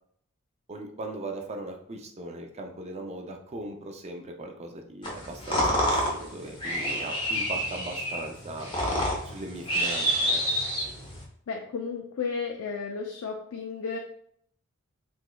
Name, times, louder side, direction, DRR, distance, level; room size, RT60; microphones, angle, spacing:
voice 1, 0.7-8.7 9.2-10.4, right 2 dB, 30° right, 3 dB, 0.4 m, -39 dB
sound 1, 5.0-11.2, equal, 25° left, 0.8 m, -28 dB
voice 2, 11.5-14.0, left 5 dB, 85° left, 2 dB, 0.4 m, -33 dB
3.4 x 3.0 x 2.2 m, 0.67 s
head